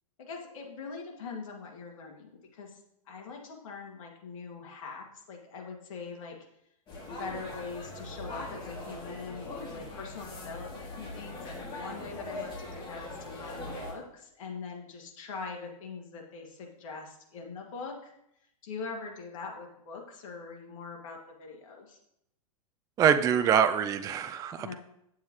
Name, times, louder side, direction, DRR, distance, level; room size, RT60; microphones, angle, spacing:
voice 1, 0.2-2.8 3.1-6.4 7.1-18.1 18.6-22.0 24.6-24.8, left 4 dB, 65° left, 1 dB, 2.2 m, -42 dB
sound 1, 6.9-13.9, left 2 dB, 30° left, 2.6 m, -41 dB
voice 2, 23.0-24.7, right 8 dB, 20° right, 10 dB, 0.3 m, -24 dB
8.9 x 7.3 x 3.2 m, 0.77 s
hypercardioid pair, 120°, 18 cm